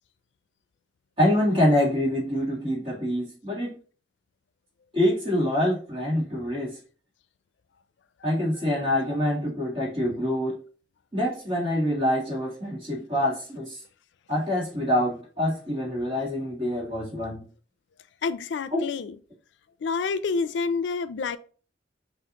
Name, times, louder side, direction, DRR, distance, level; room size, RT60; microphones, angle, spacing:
voice 1, 1.2-3.8 4.9-6.8 8.2-10.6 11.1-13.8 14.3-17.4 18.7-18.8, left 1 dB, 30° right, 1.6 m, -25 dB
voice 2, 8.2-8.7 18.2-19.2 19.8-21.4, left 5 dB, 80° left, 0.4 m, -29 dB
5.7 x 2.4 x 2.8 m
head